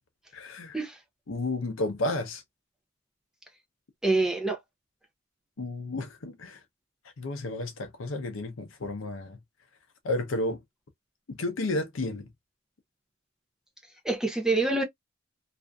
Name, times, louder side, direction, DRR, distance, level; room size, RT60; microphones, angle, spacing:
voice 1, 0.3-0.8 1.3-2.4 5.6-6.6 7.2-9.4 10.0-10.6 11.3-12.3, left 2 dB, 85° left, 0.6 m, -32 dB
voice 2, 4.0-4.6 14.0-14.8, right 2 dB, 5° right, 0.4 m, -26 dB
2.5 x 2.4 x 2.2 m
head